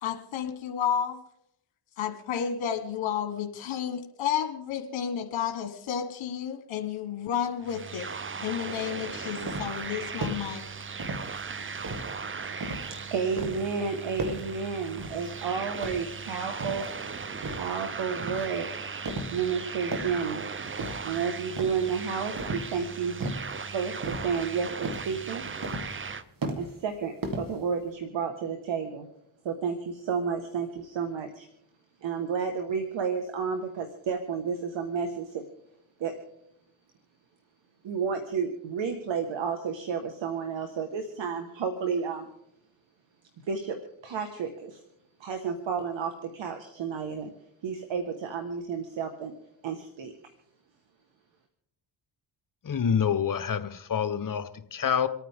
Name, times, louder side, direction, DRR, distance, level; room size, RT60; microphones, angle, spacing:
voice 1, 0.0-1.2 2.0-8.1 8.4-10.6, left 8 dB, 70° left, 1.4 m, -31 dB
sound 1, 7.6-26.2, right 5 dB, 25° right, 0.7 m, -38 dB
sound 2, 9.1-9.9 10.2-10.5 11.0-11.4 11.8-13.0 13.4-13.7 14.2-14.6 15.0-15.4 15.8-16.9 17.4-17.8 18.2-18.5 19.1-19.5 19.8-20.3 20.8-21.2 21.6-22.0 22.4-22.8 23.2-23.6 24.0-24.6 24.8-25.2 25.6-26.1 26.4-26.9 27.2-27.9, right 2 dB, 45° right, 2.2 m, -36 dB
voice 2, 11.5-16.9 17.5-18.7 19.3-20.4 21.0-23.2 23.7-25.4 26.6-29.0 29.4-31.5 32.0-35.4 36.0-36.1 37.8-42.3 43.5-44.8 45.2-47.3 47.6-49.3 49.6-50.1, right 6 dB, 65° right, 1.6 m, -31 dB
voice 3, 52.6-55.1, left 7 dB, 45° left, 1.1 m, -27 dB
28.0 x 9.3 x 3.6 m
cardioid pair, 70°, 48 cm